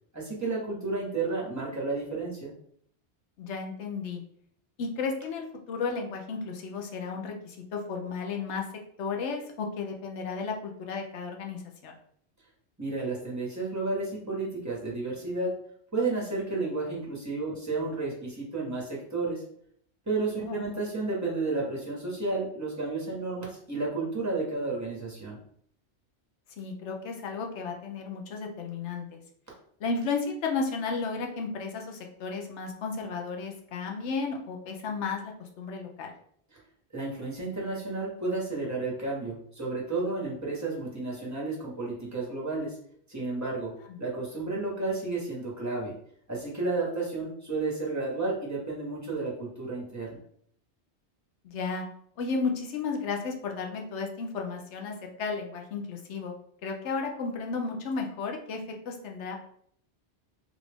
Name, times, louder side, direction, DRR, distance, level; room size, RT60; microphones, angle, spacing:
voice 1, 0.1-2.5 12.8-15.5 15.9-19.4 20.1-25.4 36.9-42.8 43.1-43.7 44.0-45.9 46.3-50.2, right 3 dB, 15° right, -4 dB, 1.1 m, -32 dB
voice 2, 3.4-4.2 4.8-8.7 9.0-11.9 20.4-20.6 26.6-29.2 29.8-36.1 43.9-44.0 51.4-51.8 52.2-56.3 56.6-59.4, left 4 dB, 85° left, 2 dB, 1.0 m, -33 dB
3.6 x 2.4 x 3.3 m, 0.65 s
omnidirectional pair, 1.2 m